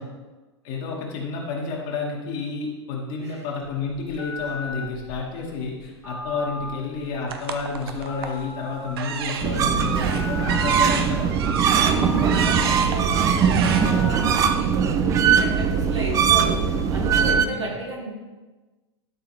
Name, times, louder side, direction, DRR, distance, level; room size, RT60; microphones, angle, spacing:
voice 1, 0.6-11.3 17.3-17.7, left 4 dB, 45° left, -2 dB, 2.0 m, -30 dB
Telephone, 3.6-15.1, left 3 dB, 85° left, 2.9 m, -37 dB
sound 1, 7.3-8.4 8.9-14.4, right 7 dB, 55° right, 0.8 m, -30 dB
sound 2, 9.4-17.4, right 7 dB, 20° right, 0.5 m, -21 dB
voice 2, 11.7-18.1, right 1 dB, 75° right, -3 dB, 2.3 m, -32 dB
12.0 x 5.5 x 3.4 m, 1.2 s
figure-of-eight pair, 95°, 15 cm